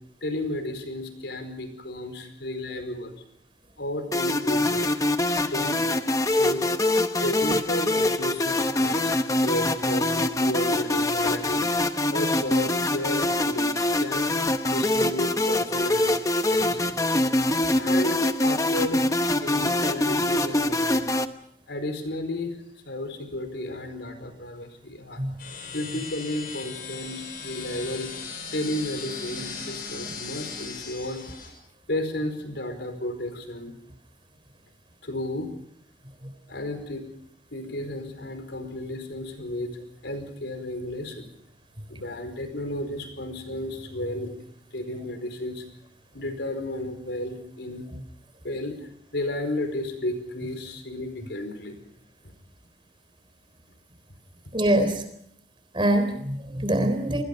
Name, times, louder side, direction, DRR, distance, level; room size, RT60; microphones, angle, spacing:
voice 1, 0.2-3.2 3.8-5.0 5.5-5.9 6.4-6.6 7.2-11.7 12.1-14.4 14.7-16.1 16.5-16.9 17.8-19.1 19.4-21.1 21.7-22.6 22.8-25.2 25.7-28.1 28.5-31.2 31.9-33.7 35.0-35.5 36.5-37.0 37.5-41.3 41.9-44.3 44.7-45.6 46.1-47.8 48.4-51.8, left 1 dB, 90° left, 7 dB, 4.9 m, -33 dB
sound 1, 4.1-21.3, left 1 dB, 20° left, 0.9 m, -24 dB
sound 2, 25.4-31.5, left 5 dB, 55° left, 6.6 m, -38 dB
voice 2, 54.5-55.0 55.7-57.2, right 1 dB, 30° right, 9 dB, 3.7 m, -24 dB
29.0 x 20.5 x 5.5 m, 0.70 s
head